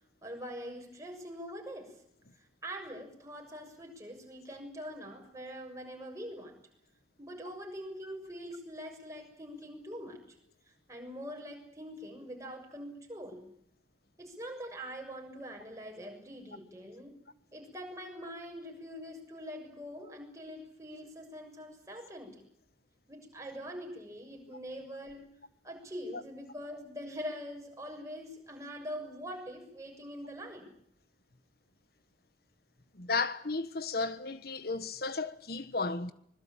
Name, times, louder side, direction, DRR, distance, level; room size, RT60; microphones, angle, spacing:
voice 1, 0.2-1.9 2.6-6.5 7.2-10.2 10.9-13.5 14.2-17.2 17.5-22.3 23.1-25.3 25.6-30.7, equal, 20° right, 6.8 m, -43 dB
voice 2, 32.9-36.1, left 3 dB, 60° left, 1.5 m, -34 dB
25.0 x 21.0 x 8.9 m
head